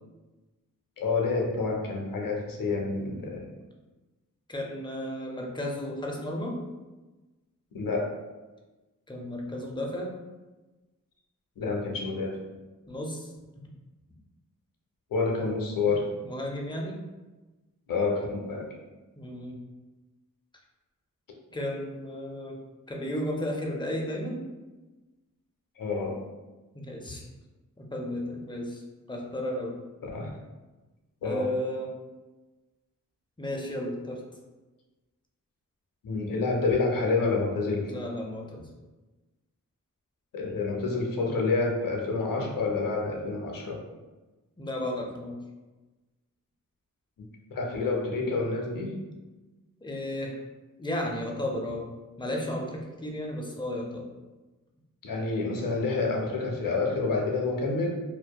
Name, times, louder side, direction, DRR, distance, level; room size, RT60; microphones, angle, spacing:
voice 1, 1.0-3.5 7.7-8.1 11.6-12.4 15.1-16.1 17.9-18.7 25.8-26.2 30.0-30.3 31.2-31.4 36.0-37.9 40.3-43.8 47.2-49.0 55.0-57.9, left 3 dB, 80° left, 0 dB, 0.6 m, -28 dB
voice 2, 4.5-6.6 9.1-10.1 12.9-13.3 16.2-17.0 19.2-19.6 21.5-22.6 22.9-24.4 26.7-27.3 27.8-28.8 29.1-29.8 31.2-31.9 33.4-34.2 37.9-38.6 44.6-45.4 49.8-50.4 50.8-51.8 52.2-54.0, left 1 dB, 15° left, 0 dB, 0.4 m, -33 dB
2.7 x 2.1 x 2.2 m, 1.2 s
wide cardioid pair, 80°, 34 cm